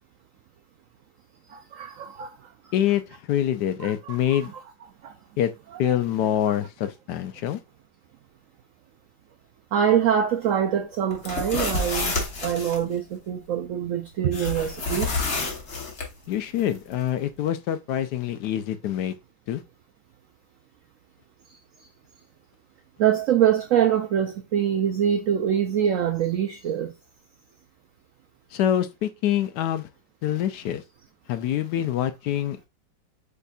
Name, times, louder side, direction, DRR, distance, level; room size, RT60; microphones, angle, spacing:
voice 1, 1.5-2.4 3.8-4.4 5.0-5.2 5.8-6.0 6.4-6.5 9.7-15.2 23.0-26.9, right 9 dB, 80° right, 0.7 m, -24 dB
voice 2, 2.7-4.5 5.4-5.5 5.8-7.6 16.3-19.1 19.5-19.6 28.5-29.9 30.2-30.8 31.3-32.6, left 11 dB, 75° left, 1.1 m, -25 dB
sound 1, 11.1-12.8 14.3-16.1, left 3 dB, 45° left, 1.3 m, -28 dB
5.3 x 4.1 x 2.3 m
omnidirectional pair, 1.9 m